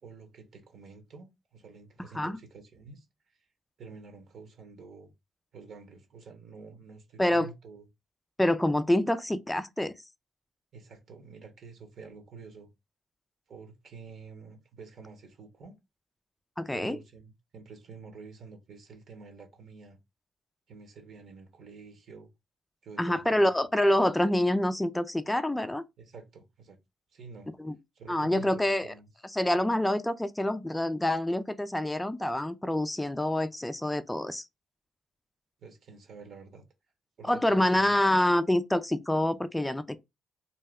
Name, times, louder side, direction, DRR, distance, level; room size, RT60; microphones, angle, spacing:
voice 1, 0.0-3.4 3.8-5.1 5.5-7.9 10.7-12.7 13.5-15.7 16.7-20.0 20.7-22.3 22.8-23.5 26.0-26.8 27.1-27.5 27.9-29.1 35.6-36.6 37.2-38.0, right 4 dB, 60° right, 1.1 m, -48 dB
voice 2, 7.2-7.5 8.4-9.9 16.6-17.0 23.0-25.8 27.6-27.8 28.1-28.9 29.3-34.4 37.3-40.0, left 1 dB, 10° left, 0.3 m, -26 dB
2.7 x 2.1 x 3.4 m
cardioid pair, 90°, 0 cm